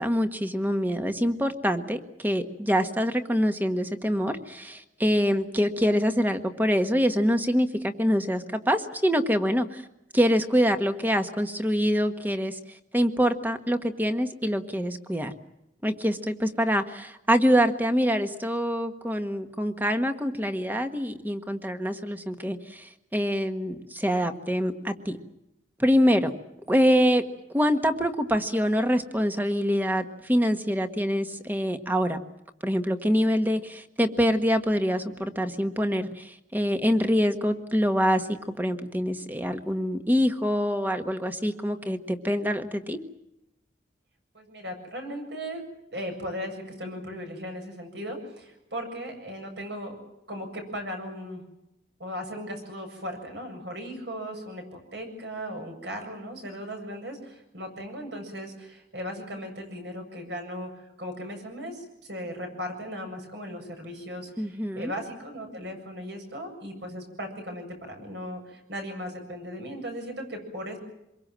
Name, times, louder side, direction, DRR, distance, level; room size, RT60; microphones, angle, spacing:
voice 1, 0.0-9.8 10.1-12.6 12.9-15.3 15.8-25.2 25.8-26.3 26.7-27.3 27.5-32.2 32.6-43.0 64.4-64.9, equal, 10° right, 8 dB, 1.4 m, -25 dB
voice 2, 44.3-45.6 45.9-50.0 50.3-51.4 52.0-70.8, equal, 65° right, 3 dB, 7.7 m, -37 dB
26.0 x 22.5 x 7.6 m, 0.88 s
head